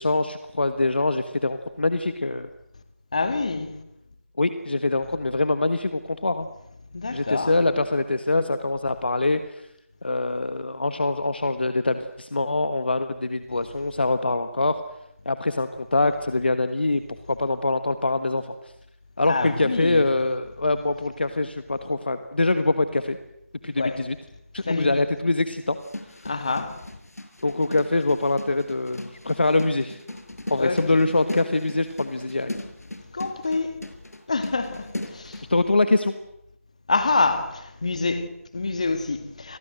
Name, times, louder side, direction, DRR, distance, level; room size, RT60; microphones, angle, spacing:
voice 1, 0.0-2.5 4.4-6.5 7.1-9.7 10.0-14.8 15.2-17.0 17.3-18.7 19.2-23.2 23.6-24.1 24.5-25.8 27.4-30.0 30.5-32.5 35.5-36.1, left 2 dB, 40° left, 1.4 m, -24 dB
voice 2, 3.1-3.8 6.9-7.6 19.2-20.1 23.8-24.0 24.6-25.0 26.2-26.8 30.5-31.0 33.1-33.8 34.3-35.4 36.9-39.6, left 3 dB, 25° left, 2.2 m, -26 dB
sound 1, 25.7-35.5, left 1 dB, 85° left, 5.7 m, -37 dB
29.5 x 23.5 x 7.9 m
figure-of-eight pair, 175°, 8 cm